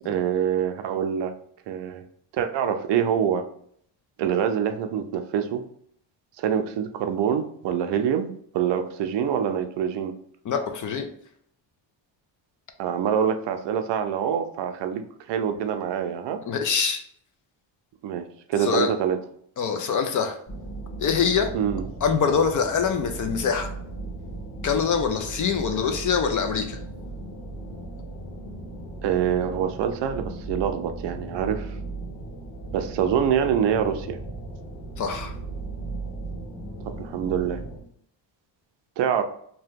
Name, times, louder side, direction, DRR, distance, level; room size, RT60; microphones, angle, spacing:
voice 1, 0.0-1.3 1.7-2.0 2.3-3.4 4.2-5.6 6.4-10.1 12.8-15.0 15.3-16.4 18.0-19.2 21.5-21.8 29.0-31.8 32.7-34.2 37.0-37.6 39.0-39.2, right 8 dB, 65° right, 7 dB, 0.5 m, -25 dB
voice 2, 10.4-11.1 16.5-17.0 18.6-18.9 19.6-20.4 21.0-21.5 22.0-23.7 24.6-26.8 35.0-35.3, left 6 dB, 45° left, 6 dB, 0.4 m, -24 dB
sound 1, 20.5-37.8, right 2 dB, 25° left, 0.8 m, -36 dB
2.8 x 2.2 x 3.4 m, 0.65 s
cardioid pair, 130°, 46 cm